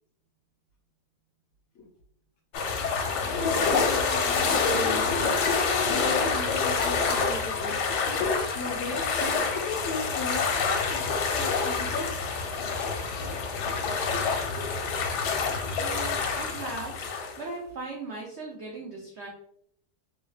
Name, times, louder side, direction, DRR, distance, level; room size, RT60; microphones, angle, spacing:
sound 1, 2.5-17.4, left 4 dB, 85° left, 1.2 m, -27 dB
voice 1, 3.0-5.1 5.4-7.7 8.1-12.2, left 4 dB, 65° left, -2 dB, 1.5 m, -36 dB
voice 2, 15.8-19.3, right 3 dB, 60° right, -2 dB, 0.7 m, -39 dB
3.6 x 3.2 x 2.3 m, 0.68 s
omnidirectional pair, 1.8 m